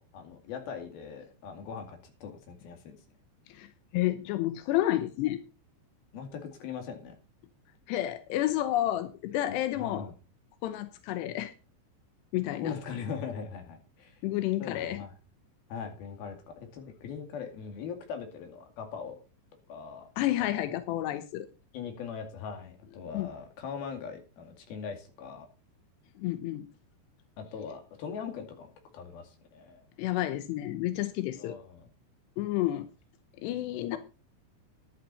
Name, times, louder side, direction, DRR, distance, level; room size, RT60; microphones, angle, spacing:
voice 1, 0.0-3.0 6.1-7.1 9.5-10.1 12.5-14.2 14.6-15.1 15.7-19.2 19.7-20.1 20.4-20.7 21.7-25.5 27.4-29.8 31.4-31.9 33.9-34.0, left 6 dB, 55° left, 5 dB, 3.7 m, -41 dB
voice 2, 3.9-5.4 7.9-10.1 10.6-11.5 12.3-12.7 14.2-15.0 20.2-21.5 23.1-23.3 26.2-26.7 30.0-31.6 32.4-32.9 33.4-34.0, left 14 dB, 80° left, 10 dB, 2.5 m, -30 dB
11.5 x 11.0 x 4.2 m, 0.32 s
omnidirectional pair, 5.9 m